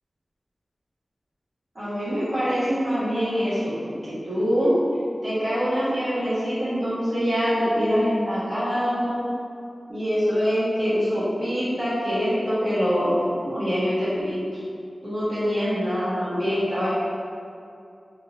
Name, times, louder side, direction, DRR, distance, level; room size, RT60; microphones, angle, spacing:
voice 1, 1.7-3.8 4.0-4.7 5.2-9.3 9.9-14.4 15.0-16.9, equal, 50° right, -12 dB, 1.5 m, -24 dB
3.6 x 2.8 x 2.6 m, 2.5 s
wide cardioid pair, 85°, 0 cm